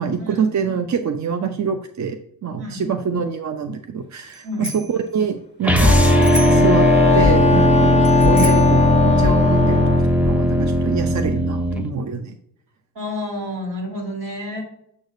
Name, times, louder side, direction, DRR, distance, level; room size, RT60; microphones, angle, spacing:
voice 1, 0.0-6.0 6.5-6.9 7.1-10.0 10.2-12.4, right 6 dB, 40° right, 7 dB, 0.7 m, -25 dB
Bicycle bell, 4.3-5.0 6.2-6.8 8.0-8.8, left 1 dB, 25° right, 1.7 m, -32 dB
voice 2, 4.4-4.8 12.9-14.6, left 1 dB, 65° right, 0 dB, 2.8 m, -29 dB
sound 1, 5.6-11.8, left 1 dB, 5° right, 1.1 m, -16 dB
Wind instrument woodwind instrument, 5.8-10.1, left 4 dB, 15° left, 0.3 m, -21 dB
7.1 x 6.3 x 2.6 m, 0.72 s
hypercardioid pair, 40°, 46 cm